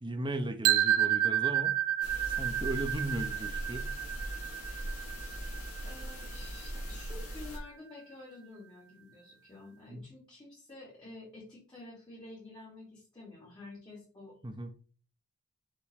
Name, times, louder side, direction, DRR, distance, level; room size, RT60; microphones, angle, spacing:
voice 1, 0.0-1.7 2.4-3.9 9.9-10.0 14.4-14.7, right 1 dB, 20° right, 7 dB, 1.0 m, -36 dB
sound 1, 0.6-6.6, right 11 dB, 85° right, 0.4 m, -30 dB
sound 2, 2.0-7.6, equal, 90° left, 4.6 m, -40 dB
voice 2, 5.8-14.4, left 2 dB, 20° left, -6 dB, 3.4 m, -50 dB
7.2 x 6.6 x 3.7 m, 0.38 s
head